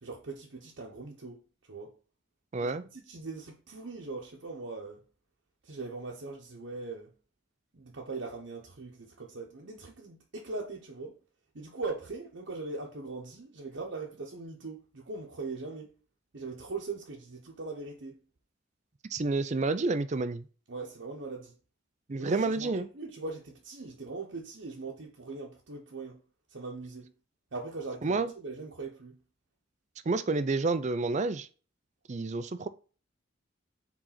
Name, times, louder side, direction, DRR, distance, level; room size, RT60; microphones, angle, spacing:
voice 1, 0.0-1.9 2.6-5.0 5.6-7.1 7.7-11.2 11.5-15.9 16.3-18.2 20.7-21.5 22.2-26.2 26.5-27.1 27.5-29.2, right 3 dB, 65° right, 0.9 m, -40 dB
voice 2, 2.5-2.8 19.1-20.5 22.1-22.9 28.0-28.3 30.1-31.5 32.1-32.7, right 3 dB, 35° right, 0.5 m, -29 dB
4.9 x 3.9 x 5.6 m
head